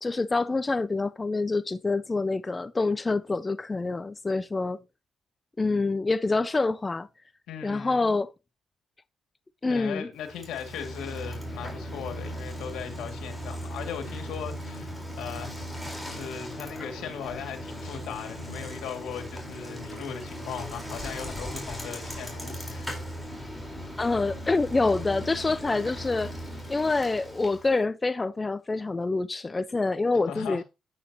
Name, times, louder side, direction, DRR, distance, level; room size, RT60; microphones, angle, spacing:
voice 1, 0.0-4.8 5.6-7.1 7.6-8.3 9.6-10.1 24.0-26.3 26.7-30.6, left 3 dB, 20° left, 0.4 m, -26 dB
voice 2, 7.5-8.1 9.7-15.7 16.0-23.0 30.1-30.6, left 8 dB, 85° left, 2.3 m, -38 dB
Bicycle, 10.2-27.8, equal, ahead, 4.2 m, -38 dB
9.4 x 9.1 x 2.9 m
cardioid pair, 90°, 0 cm